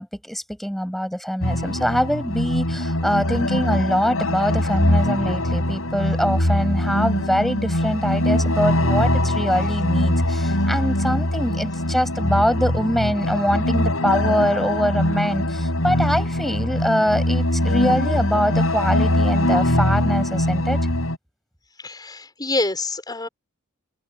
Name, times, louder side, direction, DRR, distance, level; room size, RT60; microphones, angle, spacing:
voice 1, 0.0-20.8, equal, ahead, 6.8 m, -23 dB
sound 1, 1.4-21.2, left 1 dB, 75° left, 7.5 m, -22 dB
voice 2, 21.8-23.3, left 2 dB, 20° left, 6.3 m, -26 dB
head